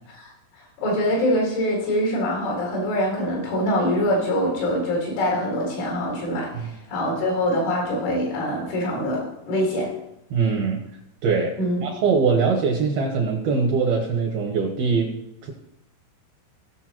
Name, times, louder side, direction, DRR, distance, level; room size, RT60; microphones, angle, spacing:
voice 1, 0.8-9.9 11.6-11.8, equal, 75° left, -3 dB, 6.5 m, -24 dB
voice 2, 10.3-10.8 11.2-11.6 11.8-15.1 15.4-15.5, right 5 dB, 75° right, 0 dB, 2.4 m, -22 dB
18.5 x 6.8 x 3.0 m, 0.83 s
omnidirectional pair, 5.6 m